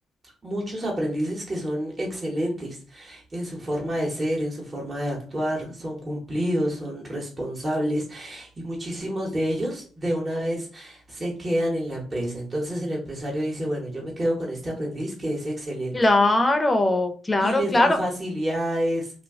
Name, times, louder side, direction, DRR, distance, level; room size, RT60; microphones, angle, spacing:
voice 1, 0.4-16.0 17.4-19.1, equal, 25° right, -2 dB, 0.8 m, -28 dB
voice 2, 15.9-18.0, left 2 dB, 20° left, 6 dB, 0.5 m, -20 dB
2.3 x 2.2 x 3.4 m, 0.40 s
cardioid pair, 90°, 0 cm